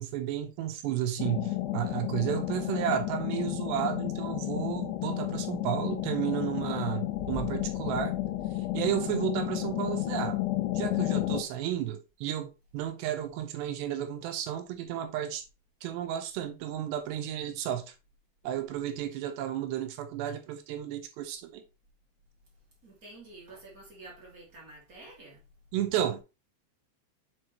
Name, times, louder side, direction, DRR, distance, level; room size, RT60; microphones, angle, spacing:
voice 1, 0.0-8.1 8.7-10.4 10.8-15.4 15.8-17.9 18.4-21.6 25.7-26.2, right 11 dB, 75° right, 2.7 m, -32 dB
sound 1, 1.2-11.4, left 16 dB, 85° left, 3.3 m, -32 dB
sound 2, 7.1-9.8 10.1-10.2, left 1 dB, 65° left, 2.9 m, -45 dB
voice 2, 22.8-25.4, right 2 dB, 30° right, 1.6 m, -49 dB
7.9 x 5.7 x 3.0 m
omnidirectional pair, 5.4 m